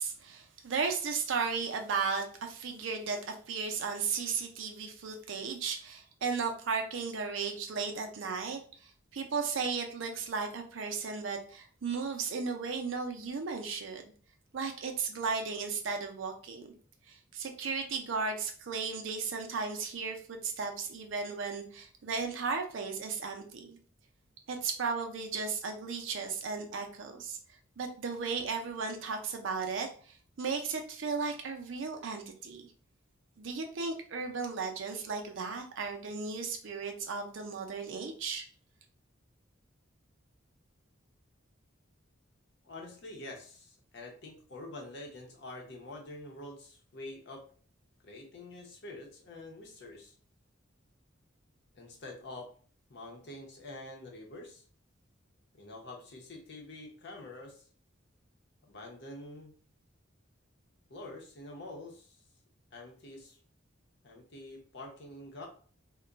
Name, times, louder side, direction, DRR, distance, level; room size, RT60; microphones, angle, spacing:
voice 1, 0.0-14.1 14.5-16.7 17.1-23.8 24.5-27.4 27.8-32.7 33.4-38.4, right 5 dB, 70° right, 4 dB, 0.5 m, -35 dB
voice 2, 42.6-47.4 48.0-50.1 51.7-52.5 52.9-54.6 55.5-57.6 58.6-59.6 60.9-62.2 62.7-63.4 64.0-65.5, left 2 dB, 55° left, 1 dB, 0.7 m, -46 dB
2.3 x 2.2 x 3.8 m, 0.43 s
head